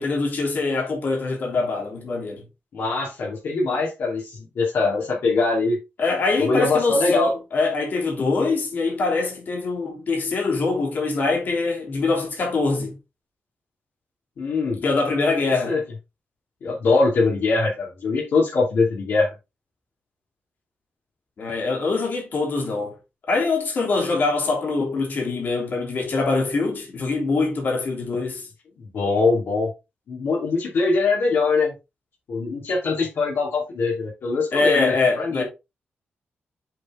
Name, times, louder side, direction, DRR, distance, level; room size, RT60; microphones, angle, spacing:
voice 1, 0.0-2.4 6.0-13.0 14.8-15.8 21.4-23.0 23.3-28.5 34.5-35.4, left 3 dB, 50° left, 3.1 m, -23 dB
voice 2, 2.7-5.8 6.4-7.3 14.4-14.8 15.6-15.8 16.6-19.3 28.8-29.7 30.1-31.7 32.3-35.4, left 3 dB, 70° left, 2.6 m, -22 dB
7.6 x 4.2 x 3.7 m
wide cardioid pair, 155°, 4 cm